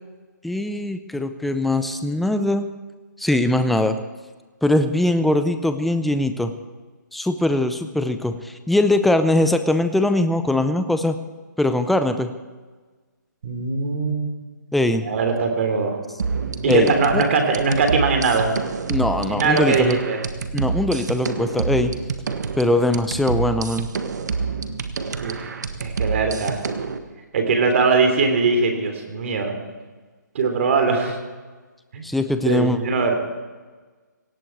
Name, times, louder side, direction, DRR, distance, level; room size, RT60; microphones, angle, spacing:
voice 1, 0.4-2.7 3.2-4.0 4.6-6.5 7.1-11.2 11.6-12.3 14.7-15.0 16.7-17.2 18.9-20.0 20.5-21.9 22.6-23.9 32.0-32.8, left 1 dB, ahead, 9 dB, 0.5 m, -21 dB
voice 2, 13.4-14.3 15.0-16.0 16.6-18.5 19.3-20.2 22.6-22.7 25.2-25.5 25.8-26.6 27.3-29.5 30.3-31.2 31.9-32.0 32.4-33.2, right 4 dB, 40° right, 5 dB, 3.4 m, -21 dB
sound 1, 16.2-27.0, right 5 dB, 60° right, 1.6 m, -28 dB
18.0 x 16.5 x 4.7 m, 1.4 s
hypercardioid pair, 160°, 10 cm